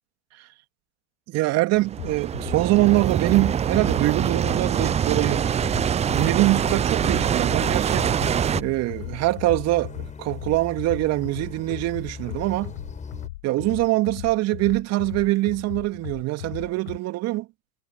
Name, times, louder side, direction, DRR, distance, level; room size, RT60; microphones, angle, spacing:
voice 1, 1.3-5.5 6.1-8.1 8.6-12.7 13.4-17.5, right 18 dB, 35° right, 2.6 m, -23 dB
sound 1, 1.8-8.6, right 8 dB, 15° right, 0.8 m, -24 dB
sound 2, 2.0-17.0, left 17 dB, 60° left, 7.2 m, -38 dB
sound 3, 8.0-13.3, left 6 dB, 15° left, 7.8 m, -40 dB
hypercardioid pair, 100°, 42 cm